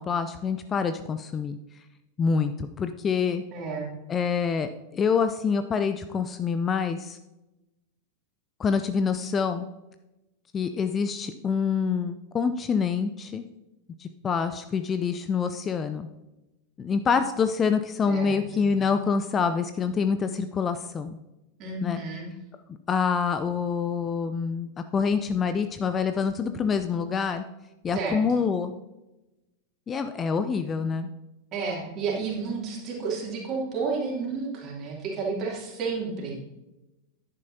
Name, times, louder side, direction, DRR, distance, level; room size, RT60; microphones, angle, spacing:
voice 1, 0.0-1.6 2.2-3.4 4.1-7.2 8.6-9.6 10.5-13.5 14.0-16.1 16.8-21.2 21.8-22.0 22.9-27.4 27.8-28.7 29.9-31.1, left 6 dB, 20° left, 9 dB, 0.4 m, -26 dB
voice 2, 3.5-3.9 18.1-18.7 21.6-22.3 27.9-28.2 31.5-36.4, right 4 dB, 35° right, -3 dB, 2.8 m, -31 dB
10.5 x 9.2 x 2.8 m, 0.98 s
figure-of-eight pair, 90°, 0 cm